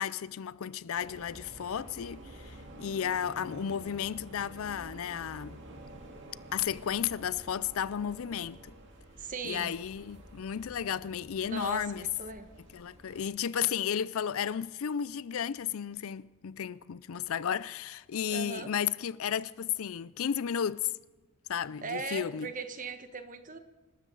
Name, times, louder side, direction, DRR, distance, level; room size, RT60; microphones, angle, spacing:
voice 1, 0.0-5.6 6.5-8.7 9.4-12.1 12.7-20.9 21.5-22.5, left 8 dB, 65° left, 0.4 m, -33 dB
sound 1, 0.9-13.3, right 1 dB, 55° right, 2.3 m, -50 dB
voice 2, 9.2-9.7 11.4-12.5 18.3-18.7 21.8-23.6, right 4 dB, 35° right, 1.2 m, -39 dB
28.5 x 13.0 x 3.9 m
head